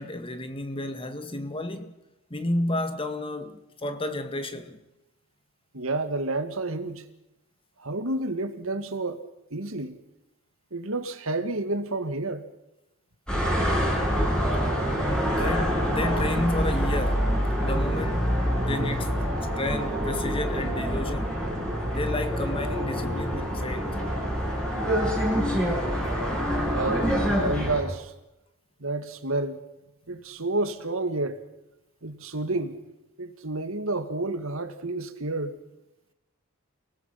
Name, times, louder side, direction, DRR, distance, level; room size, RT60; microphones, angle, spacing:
voice 1, 0.0-1.9 2.3-4.8 15.3-17.4 17.6-19.1 19.6-21.5 21.9-24.0, left 1 dB, 25° left, 1.9 m, -31 dB
voice 2, 5.7-7.1 7.8-9.2 9.5-10.0 10.7-12.4 26.7-27.1 27.4-28.1 28.8-29.6 30.1-31.4 32.0-32.8 33.2-35.6, right 2 dB, 65° right, 2.1 m, -30 dB
sound 1, 13.3-27.8, equal, 5° left, 6.9 m, -26 dB
30.0 x 19.5 x 6.0 m
head